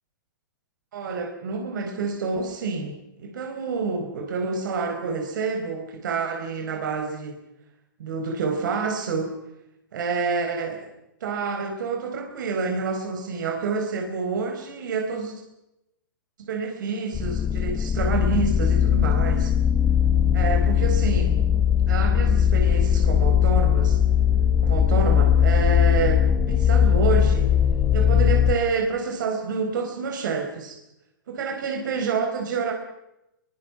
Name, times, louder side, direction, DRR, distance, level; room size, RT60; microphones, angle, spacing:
voice 1, 0.9-7.4 8.0-9.3 9.9-10.9 11.2-15.3 16.4-19.5 20.3-21.4 21.9-24.0 24.6-26.2 26.5-27.5 27.9-30.8 31.3-32.7, right 5 dB, 70° right, 3 dB, 4.6 m, -28 dB
sound 1, 17.1-28.5, left 8 dB, 20° left, 1.0 m, -20 dB
24.5 x 23.0 x 6.1 m, 0.91 s
hypercardioid pair, 125°, 11 cm